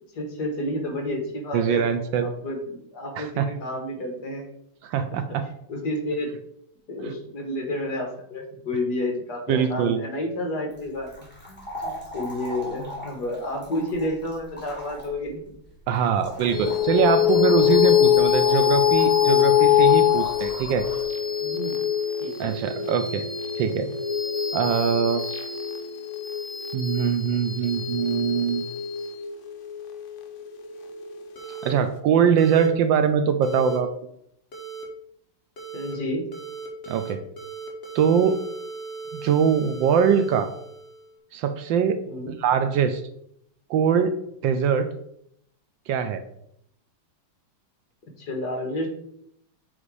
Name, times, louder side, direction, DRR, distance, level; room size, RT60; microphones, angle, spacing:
voice 1, 0.1-1.9 2.2-4.5 5.7-6.3 6.9-15.4 21.4-21.8 22.2-22.8 35.7-36.2 42.1-42.3 48.2-48.9, left 1 dB, 55° left, 2 dB, 1.9 m, -30 dB
voice 2, 1.5-2.3 3.2-3.5 4.8-5.4 9.5-10.0 15.9-20.9 22.4-23.2 23.6-23.9 24.5-25.2 26.7-28.6 31.6-33.9 36.8-37.2 37.9-38.4 39.1-40.5 41.3-43.0 43.7-44.1 44.4-44.9 45.9-46.2, right 7 dB, 75° right, 10 dB, 1.2 m, -22 dB
sound 1, 10.7-21.0, equal, 5° left, 2.6 m, -40 dB
sound 2, 16.5-31.3, left 11 dB, 85° left, 0.6 m, -23 dB
sound 3, 31.4-31.7 32.4-32.7 33.4-33.8 34.5-34.8 35.6-35.9 36.3-37.1 37.4-41.1, right 5 dB, 40° left, 1.4 m, -38 dB
8.0 x 3.7 x 4.8 m, 0.73 s
omnidirectional pair, 2.2 m